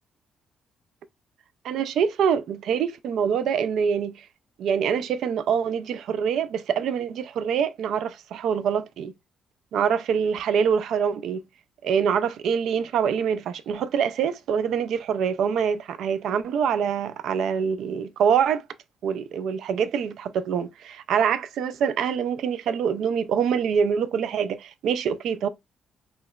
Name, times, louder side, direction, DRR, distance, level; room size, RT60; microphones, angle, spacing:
voice 1, 1.6-4.3 4.6-9.1 9.7-11.4 11.8-18.7 19.0-25.5, right 7 dB, 75° right, 0.3 m, -25 dB
3.1 x 3.0 x 2.2 m
cardioid pair, 90°, 0 cm